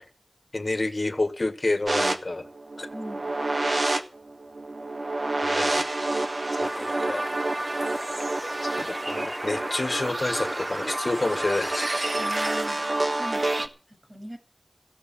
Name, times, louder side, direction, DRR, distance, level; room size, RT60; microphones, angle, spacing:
voice 1, 0.5-2.5 2.8-2.9 5.4-5.8 6.6-7.3 8.8-11.9, left 2 dB, 70° left, 1.6 m, -29 dB
sound 1, 1.9-13.7, right 2 dB, 80° right, 1.4 m, -28 dB
voice 2, 2.9-3.4 12.2-14.4, equal, 35° right, 6.9 m, -41 dB
sound 2, 6.6-12.6, equal, 10° right, 0.8 m, -37 dB
15.5 x 8.1 x 8.7 m
wide cardioid pair, 40°, 0 cm